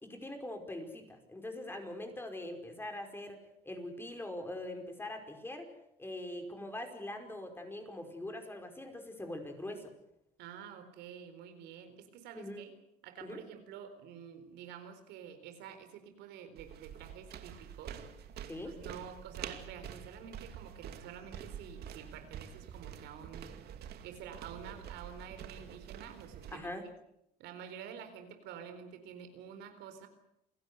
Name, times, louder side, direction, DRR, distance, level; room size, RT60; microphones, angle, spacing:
voice 1, 0.0-5.7 6.0-9.9 12.4-12.6 13.2-13.4 18.5-18.7 26.5-26.8, left 1 dB, 15° left, 5 dB, 5.2 m, -42 dB
voice 2, 10.4-12.7 13.0-18.0 18.6-23.6 24.0-26.7 27.4-30.1, right 8 dB, 90° right, 8 dB, 4.2 m, -49 dB
sound 1, 16.6-26.6, right 9 dB, 70° right, 2.5 m, -47 dB
28.5 x 17.0 x 8.2 m, 0.81 s
cardioid pair, 110°, 17 cm